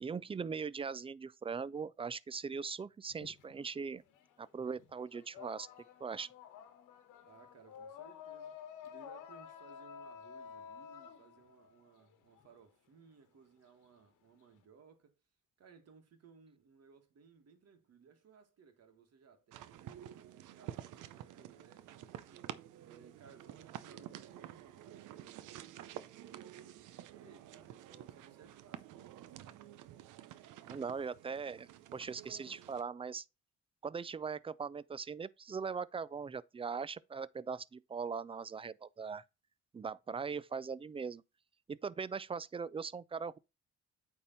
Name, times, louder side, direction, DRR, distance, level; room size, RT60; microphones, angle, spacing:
voice 1, 0.0-4.0 4.4-5.7 6.0-6.3 30.7-33.2 33.8-39.2 39.7-41.2 41.7-43.4, right 5 dB, 20° right, 0.4 m, -40 dB
sound 1, 3.1-4.4 4.7-12.5, left 7 dB, 90° left, 1.1 m, -51 dB
voice 2, 7.2-15.2 15.6-22.5 22.8-29.7, right 5 dB, 55° right, 1.9 m, -62 dB
sound 2, 19.5-32.8, right 12 dB, 85° right, 0.7 m, -50 dB
8.6 x 3.7 x 4.0 m
cardioid pair, 90°, 30 cm